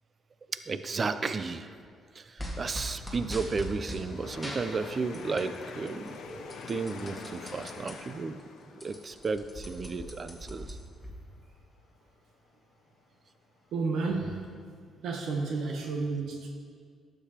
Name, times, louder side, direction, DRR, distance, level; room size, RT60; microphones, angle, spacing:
voice 1, 0.5-1.7 2.1-8.4 8.7-10.8, right 4 dB, 40° right, 11 dB, 0.4 m, -33 dB
sound 1, 2.4-4.0 4.4-5.6 5.9-7.9 8.4-8.5 8.7-11.1, equal, 5° right, 1.7 m, -40 dB
sound 2, 3.1-11.8 12.5-12.6 13.3-13.4, left 5 dB, 80° left, 0.6 m, -46 dB
voice 2, 13.7-14.7 15.0-16.5, right 4 dB, 75° right, 1 dB, 0.9 m, -31 dB
12.0 x 6.8 x 2.9 m, 2.1 s
cardioid pair, 90°, 0 cm